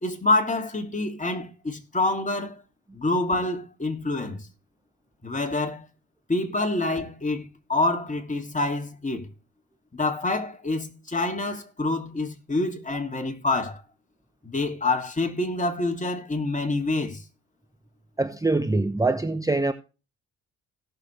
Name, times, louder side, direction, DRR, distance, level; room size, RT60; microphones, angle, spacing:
voice 1, 0.0-2.6 2.9-4.5 5.2-5.8 6.3-9.3 9.9-13.8 14.4-17.2, left 2 dB, 20° left, 2.7 m, -27 dB
voice 2, 18.2-19.7, right 2 dB, 10° right, 0.9 m, -24 dB
17.5 x 6.8 x 3.3 m
supercardioid pair, 55°, 35 cm